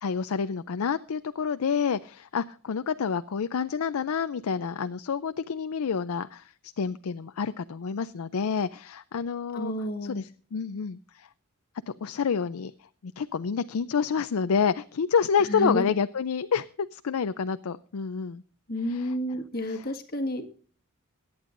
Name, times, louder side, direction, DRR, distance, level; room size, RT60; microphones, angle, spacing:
voice 1, 0.0-9.7 10.0-11.3 12.0-18.4 18.8-19.1 19.7-19.9, left 6 dB, 80° left, 11 dB, 0.5 m, -28 dB
voice 2, 9.5-10.2 15.5-15.8 18.7-20.4, left 1 dB, 45° left, 5 dB, 1.6 m, -30 dB
22.5 x 9.5 x 2.5 m, 0.43 s
head